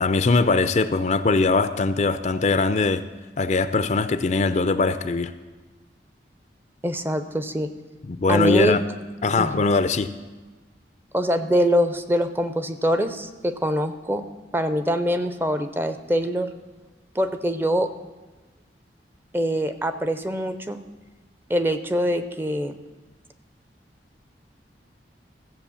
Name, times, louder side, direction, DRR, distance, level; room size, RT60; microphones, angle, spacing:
voice 1, 0.0-3.0 3.4-5.3 8.1-8.8 9.2-10.1, left 3 dB, 40° left, 12 dB, 0.5 m, -21 dB
voice 2, 6.8-7.7 8.3-8.8 9.4-9.6 11.1-14.2 14.5-16.5 17.1-17.9 19.3-20.8 21.5-22.7, equal, 10° right, 10 dB, 0.6 m, -24 dB
14.5 x 7.6 x 7.0 m, 1.3 s
head